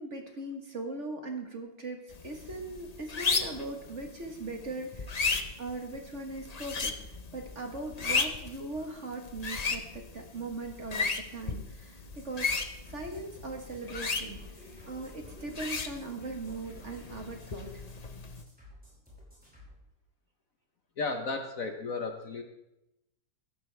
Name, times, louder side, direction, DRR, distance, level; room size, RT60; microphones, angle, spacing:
voice 1, 0.0-5.3 5.6-6.9 7.3-14.4 14.9-17.8, right 2 dB, 40° right, 3 dB, 1.6 m, -40 dB
sound 1, 2.1-18.4, left 4 dB, 90° left, 0.3 m, -36 dB
sound 2, 11.9-19.8, left 1 dB, 5° right, 5.5 m, -53 dB
voice 2, 21.0-22.4, left 3 dB, 50° left, 5 dB, 1.3 m, -34 dB
15.5 x 13.5 x 3.4 m, 0.89 s
omnidirectional pair, 2.1 m